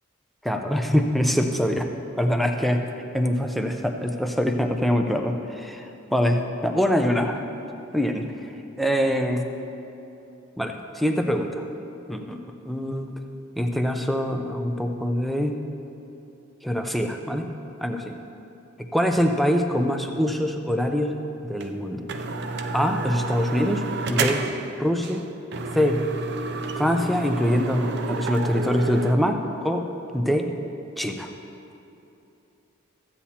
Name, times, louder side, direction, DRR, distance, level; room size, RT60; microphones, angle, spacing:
voice 1, 0.4-1.9 2.2-2.8 3.1-7.5 7.9-8.5 8.8-9.5 10.6-11.6 12.1-13.1 13.6-15.7 16.6-17.5 17.8-18.2 18.8-22.1 22.7-24.5 24.8-25.2 25.7-26.0 26.8-29.9 30.1-30.5 31.0-31.3, equal, ahead, 4 dB, 0.5 m, -24 dB
sound 1, 21.6-21.7 22.1-24.7 25.0-25.2 25.5-29.1, right 3 dB, 55° right, 0.5 m, -29 dB
14.5 x 8.5 x 2.9 m, 2.9 s
head